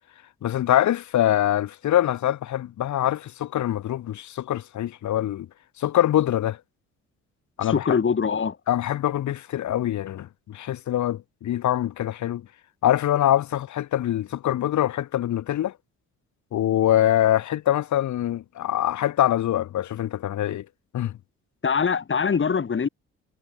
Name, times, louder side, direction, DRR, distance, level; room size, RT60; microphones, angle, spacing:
voice 1, 0.4-5.5 5.8-6.6 7.6-8.0 8.7-12.4 12.8-15.7 16.5-20.6 20.9-21.1, left 12 dB, 70° left, 2.2 m, -24 dB
voice 2, 7.6-8.6 21.6-22.9, left 6 dB, 40° left, 6.8 m, -23 dB
cardioid pair, 90°, 30 cm